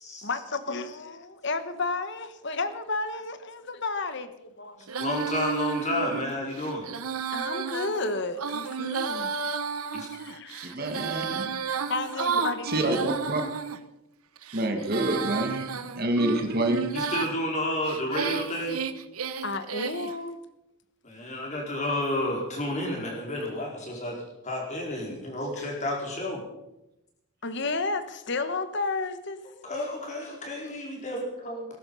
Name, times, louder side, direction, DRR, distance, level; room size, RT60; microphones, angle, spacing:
voice 1, 0.2-4.9 7.3-9.3 10.1-11.1 11.7-13.1 19.4-20.4 25.6-25.7 27.4-29.4, left 3 dB, 55° left, 11 dB, 1.2 m, -32 dB
Female singing, 4.9-13.8 14.4-17.3 17.9-20.2, right 6 dB, 85° right, 1.0 m, -32 dB
voice 2, 5.0-6.9 9.9-10.1 16.9-18.8 21.0-26.4 29.6-31.7, left 1 dB, 35° left, -1 dB, 4.6 m, -31 dB
voice 3, 10.6-11.5 12.7-13.4 14.5-16.9, right 1 dB, 45° right, 4 dB, 1.8 m, -27 dB
20.0 x 11.5 x 5.5 m, 0.91 s
head